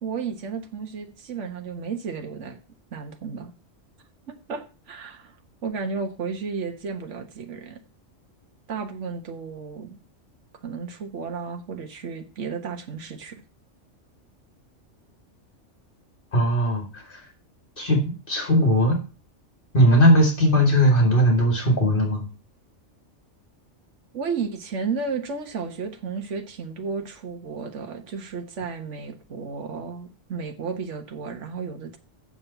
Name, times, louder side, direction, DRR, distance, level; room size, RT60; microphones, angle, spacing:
voice 1, 0.0-2.6 2.9-3.5 4.3-5.4 5.6-7.8 8.7-10.0 10.6-13.4 24.1-32.0, right 5 dB, 70° right, 5 dB, 1.5 m, -33 dB
voice 2, 16.3-17.2 17.8-19.0 19.7-22.2, equal, 45° left, 2 dB, 2.5 m, -19 dB
7.4 x 6.4 x 6.8 m, 0.34 s
omnidirectional pair, 1.3 m